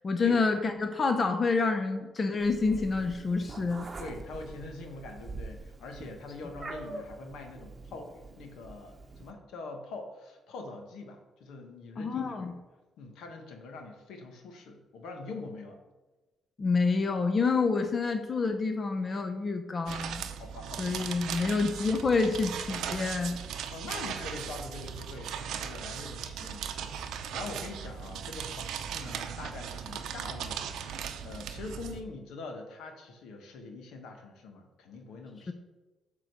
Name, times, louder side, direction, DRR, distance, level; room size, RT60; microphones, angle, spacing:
voice 1, 0.0-3.9 12.0-12.5 16.6-20.2 20.8-23.4 35.5-35.6, left 4 dB, 40° left, 6 dB, 0.7 m, -28 dB
Meow, 2.4-9.3, right 3 dB, 30° right, 0.9 m, -44 dB
voice 2, 4.0-12.5 13.0-15.8 20.4-21.7 23.7-35.5, left 3 dB, 80° left, 4 dB, 1.2 m, -44 dB
sound 1, 19.9-32.0, right 8 dB, 80° right, 0.6 m, -38 dB
7.7 x 3.9 x 6.5 m, 1.2 s
cardioid pair, 90°, 0 cm